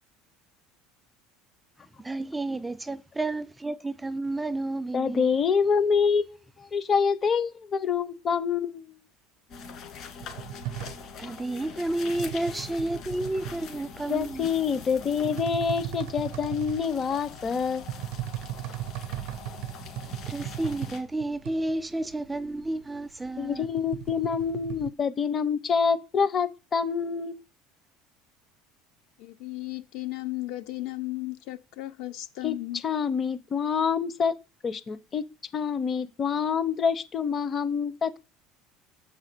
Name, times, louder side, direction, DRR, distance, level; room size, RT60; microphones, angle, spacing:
voice 1, 1.8-5.4 11.2-14.5 20.0-23.7, right 2 dB, 10° right, 0.4 m, -31 dB
voice 2, 4.9-9.0 14.1-17.9 23.4-27.4 32.4-32.5 32.8-34.3 34.6-35.2 35.5-38.2, left 6 dB, 30° left, 0.8 m, -26 dB
sound 1, 9.5-21.0, left 6 dB, 50° left, 2.3 m, -43 dB
sound 2, 10.2-24.9, right 14 dB, 75° right, 0.6 m, -38 dB
voice 3, 29.2-32.8, left 17 dB, 70° left, 1.0 m, -35 dB
7.1 x 4.8 x 6.7 m
supercardioid pair, 120°, 0 cm